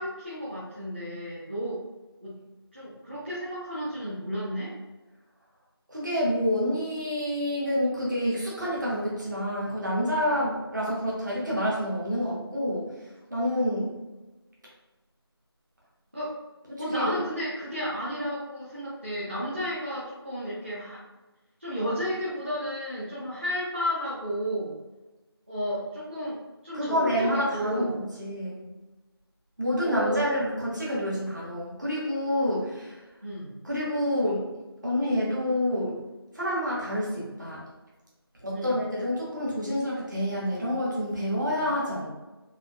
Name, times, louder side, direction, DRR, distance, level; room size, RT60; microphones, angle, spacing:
voice 1, 0.0-1.8 2.2-2.3 2.7-4.7 16.1-16.3 16.8-21.0 21.6-24.7 25.5-26.4 26.6-27.9 29.8-30.3 33.2-33.6 38.5-38.8, equal, 30° right, -11 dB, 0.6 m, -32 dB
voice 2, 5.9-13.0 13.3-13.9 16.7-17.2 26.7-28.6 29.6-33.0 33.6-34.5 34.8-36.0 36.3-37.6 38.4-42.1, equal, 45° right, -6 dB, 1.1 m, -28 dB
3.5 x 2.6 x 2.3 m, 1.1 s
figure-of-eight pair, 175°, 14 cm